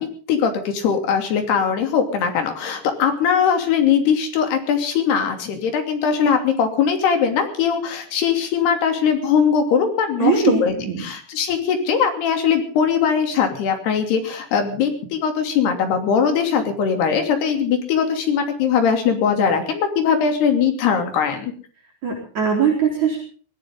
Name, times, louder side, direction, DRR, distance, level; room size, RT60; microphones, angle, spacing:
voice 1, 0.0-21.5, left 7 dB, 80° left, 6 dB, 4.9 m, -20 dB
voice 2, 10.2-11.0 22.0-23.2, right 6 dB, 45° right, -1 dB, 5.4 m, -20 dB
22.0 x 17.0 x 3.8 m, 0.42 s
omnidirectional pair, 4.7 m